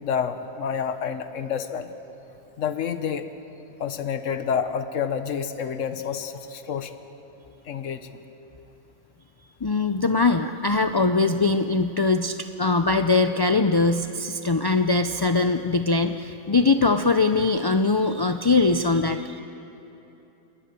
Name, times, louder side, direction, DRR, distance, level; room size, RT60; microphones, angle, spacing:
voice 1, 0.0-1.9 2.6-3.3 3.8-6.9 7.6-8.2, left 7 dB, 75° left, 9 dB, 1.4 m, -28 dB
voice 2, 9.6-19.4, left 3 dB, 35° left, 7 dB, 0.4 m, -22 dB
28.0 x 21.5 x 6.8 m, 3.0 s
omnidirectional pair, 1.3 m